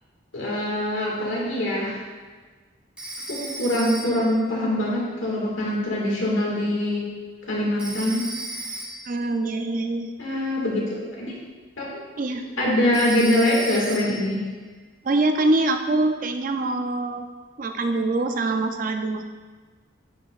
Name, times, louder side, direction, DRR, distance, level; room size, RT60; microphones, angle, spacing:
voice 1, 0.3-2.0 3.3-7.1 7.5-8.3 10.2-11.3 11.8-12.0 12.6-14.4, left 1 dB, 75° left, -4 dB, 1.9 m, -24 dB
Telephone, 3.0-4.4 7.8-9.2 12.9-14.3, right 1 dB, 5° right, 0.7 m, -35 dB
voice 2, 9.1-10.1 12.2-12.4 15.0-17.3 17.6-19.2, right 2 dB, 40° right, 6 dB, 0.4 m, -24 dB
10.5 x 5.0 x 2.4 m, 1.4 s
head